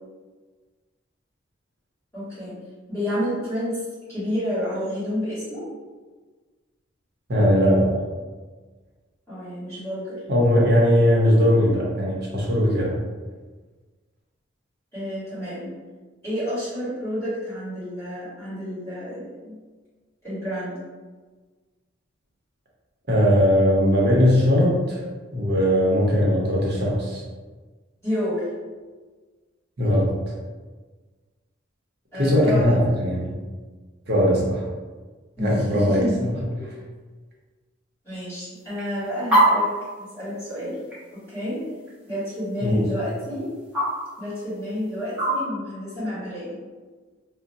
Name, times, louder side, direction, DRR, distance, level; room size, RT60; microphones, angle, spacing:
voice 1, 2.1-2.5 2.9-3.8 4.1-5.6 9.3-10.2 14.9-15.7 16.2-19.6 20.2-20.8 28.0-28.5 32.1-32.8 35.4-36.6 38.0-39.7 40.0-40.7 41.1-41.6 42.1-43.5 44.2-46.6, equal, 15° left, -13 dB, 1.5 m, -30 dB
voice 2, 7.3-8.0 10.3-13.0 23.1-25.0 25.3-27.2 29.8-30.3 32.2-33.4 34.1-34.6 35.4-36.4 42.6-42.9, equal, 55° right, -4 dB, 0.8 m, -19 dB
sound 1, 38.5-45.4, right 1 dB, 5° right, 1.0 m, -27 dB
2.6 x 2.1 x 3.9 m, 1.4 s
head